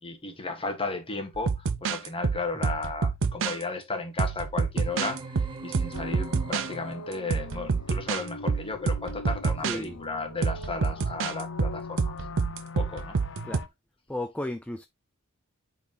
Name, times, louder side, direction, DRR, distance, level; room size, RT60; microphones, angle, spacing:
voice 1, 0.0-12.2 12.7-13.2, left 3 dB, 25° left, 1.6 m, -34 dB
sound 1, 1.4-3.6 4.2-6.7 7.3-8.2 8.5-9.8 10.4-13.6, right 5 dB, 60° right, 0.6 m, -28 dB
sound 2, 4.8-7.4, right 2 dB, 25° right, 1.4 m, -41 dB
sound 3, 5.9-13.7, left 3 dB, 60° left, 0.7 m, -42 dB
voice 2, 9.6-10.0 13.4-13.6 14.1-14.9, left 1 dB, 5° left, 0.4 m, -34 dB
8.3 x 4.3 x 2.9 m
head